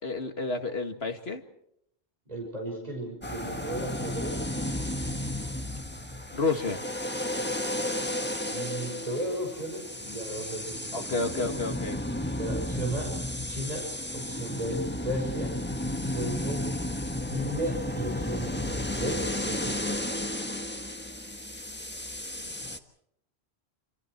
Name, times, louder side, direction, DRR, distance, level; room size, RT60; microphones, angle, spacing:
voice 1, 0.0-1.4 6.3-6.8 10.9-12.0, left 3 dB, 70° left, 6 dB, 2.3 m, -30 dB
voice 2, 2.3-4.4 8.4-11.3 12.4-13.1 13.5-13.9 14.1-15.6 16.1-16.6 17.3-18.5 19.0-19.9, right 1 dB, 35° right, 0 dB, 5.8 m, -35 dB
sound 1, 3.2-22.8, left 1 dB, 10° left, 1.4 m, -33 dB
28.0 x 27.5 x 4.6 m, 0.74 s
omnidirectional pair, 1.1 m